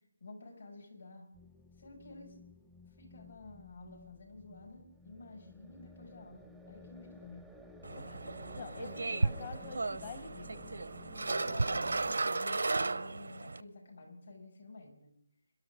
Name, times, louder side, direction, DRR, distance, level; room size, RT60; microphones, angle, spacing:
voice 1, 0.2-1.2 1.8-2.4 3.0-7.4 9.0-9.8 11.4-15.1, left 2 dB, 65° left, 0 dB, 7.0 m, -52 dB
sound 1, 1.3-12.1, left 2 dB, ahead, 0.5 m, -54 dB
sound 2, 7.8-13.6, right 3 dB, 85° right, 0.6 m, -34 dB
voice 2, 7.9-10.7, left 4 dB, 40° left, 8 dB, 1.2 m, -47 dB
27.5 x 12.5 x 3.9 m, 0.67 s
figure-of-eight pair, 165°, 0 cm